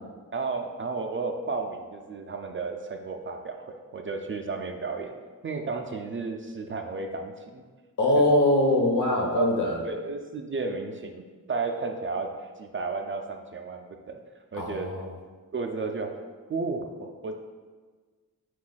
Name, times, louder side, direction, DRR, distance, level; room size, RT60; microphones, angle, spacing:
voice 1, 0.3-5.1 5.4-7.6 8.2-8.3 9.4-9.5 9.8-11.2 11.5-12.3 12.6-14.2 14.5-14.9 15.5-16.1 16.5-17.4, right 4 dB, 35° right, 4 dB, 0.4 m, -33 dB
voice 2, 8.0-9.8 14.5-15.0, left 1 dB, 60° left, 1 dB, 0.8 m, -22 dB
4.2 x 2.4 x 3.9 m, 1.4 s
cardioid pair, 55°, 35 cm